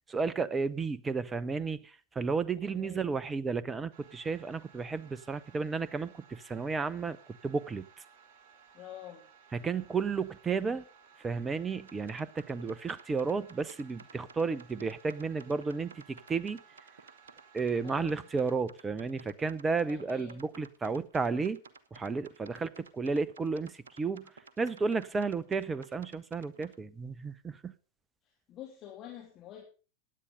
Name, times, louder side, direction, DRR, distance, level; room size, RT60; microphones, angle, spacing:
voice 1, 0.1-7.2 7.4-7.9 9.5-10.8 11.2-16.6 17.5-21.6 21.9-24.3 24.6-27.7, right 4 dB, 15° right, 0.8 m, -33 dB
voice 2, 2.6-3.1 8.7-9.3 17.8-18.3 19.9-20.4 28.2-29.6, left 11 dB, 30° left, 2.9 m, -48 dB
sound 1, 3.9-18.6, right 6 dB, 40° right, 2.8 m, -59 dB
sound 2, 11.8-26.8, right 4 dB, 65° right, 1.3 m, -55 dB
16.0 x 9.9 x 5.2 m
figure-of-eight pair, 90°, 0 cm